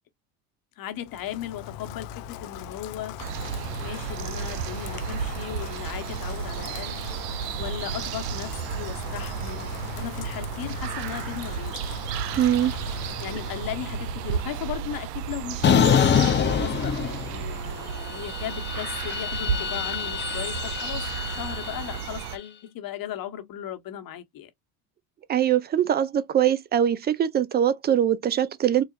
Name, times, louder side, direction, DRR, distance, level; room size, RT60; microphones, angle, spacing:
voice 1, 0.8-3.2 3.8-7.0 7.6-11.8 12.1-12.3 13.2-24.5, left 11 dB, 50° left, 1.1 m, -37 dB
Rain, 0.9-14.8, left 9 dB, 65° left, 0.6 m, -40 dB
sound 1, 3.2-22.4, right 8 dB, 90° right, 0.5 m, -33 dB
voice 2, 12.4-12.8 25.3-28.8, right 10 dB, 25° right, 0.4 m, -22 dB
sound 2, 15.6-17.6 17.9-22.2, left 7 dB, 25° left, 0.6 m, -25 dB
3.9 x 2.3 x 2.4 m
supercardioid pair, 85°, 46 cm